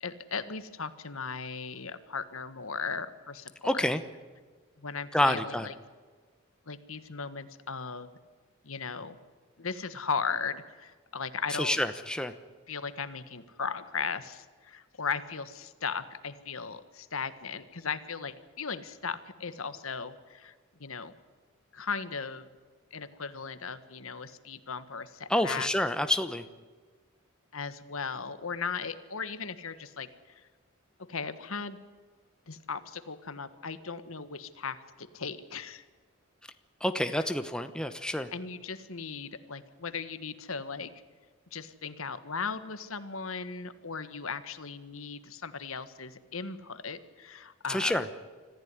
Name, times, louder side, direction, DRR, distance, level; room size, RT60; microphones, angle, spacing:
voice 1, 0.0-3.9 4.8-5.7 6.7-8.1 8.6-9.2 9.6-11.8 12.7-20.5 20.8-21.1 21.7-22.5 22.9-25.7 27.5-30.5 31.1-31.8 32.5-35.8 37.1-37.3 38.3-40.9 41.5-48.1, left 5 dB, 75° left, 12 dB, 1.5 m, -37 dB
voice 2, 3.6-4.0 5.1-5.7 11.6-12.3 25.3-26.4 36.8-38.3 47.7-48.2, left 1 dB, 5° left, 9 dB, 0.9 m, -28 dB
25.5 x 14.5 x 9.7 m, 1.5 s
head